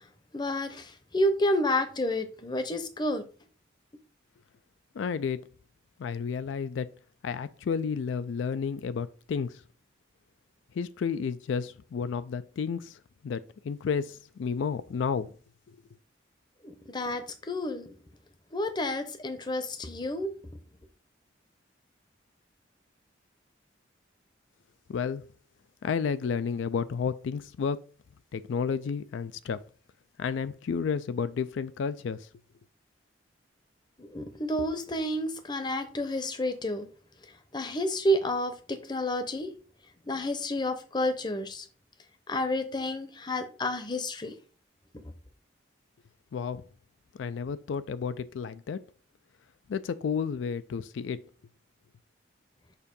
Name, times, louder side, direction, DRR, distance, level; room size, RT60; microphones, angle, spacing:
voice 1, 0.3-3.3 16.6-18.0 18.5-20.3 34.0-36.9 37.5-39.5 40.1-41.7 42.3-44.3, left 1 dB, 25° left, 0.7 m, -30 dB
voice 2, 4.9-5.4 6.0-6.9 7.2-9.6 10.7-15.3 24.9-25.2 25.8-27.8 28.3-29.6 30.2-32.3 46.3-46.6 47.1-48.8 49.7-51.2, left 6 dB, 80° left, 0.3 m, -31 dB
6.7 x 2.7 x 5.2 m
head